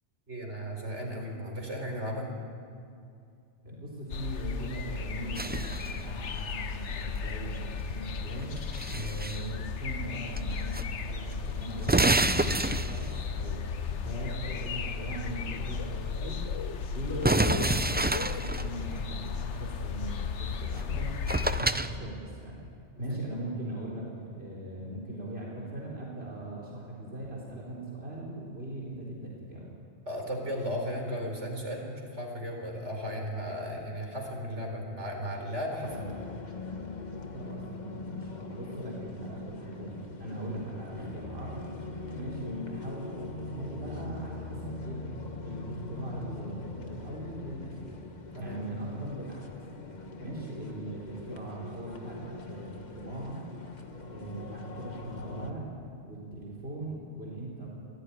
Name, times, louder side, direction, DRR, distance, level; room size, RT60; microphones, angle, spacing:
voice 1, 0.3-2.3 8.9-9.1 22.9-23.2 30.1-36.1 48.3-48.6, equal, 80° right, 1 dB, 4.6 m, -35 dB
voice 2, 3.6-8.6 8.9-16.5 16.9-22.6 23.0-29.7 37.3-41.6 42.1-48.0 48.4-49.5 50.2-53.4 54.0-55.7 56.0-57.7, right 1 dB, 60° right, -3 dB, 4.3 m, -40 dB
sound 1, 4.1-21.6, left 6 dB, 90° left, 1.3 m, -35 dB
sound 2, 5.4-6.0 8.4-9.4 10.4-10.8 11.1-11.2 11.8-13.2 17.2-18.7 20.8-20.9 21.3-21.9, right 2 dB, 15° right, 0.3 m, -27 dB
sound 3, 35.8-55.5, left 3 dB, 40° left, 1.5 m, -42 dB
25.0 x 16.0 x 9.9 m, 2.4 s
omnidirectional pair, 1.2 m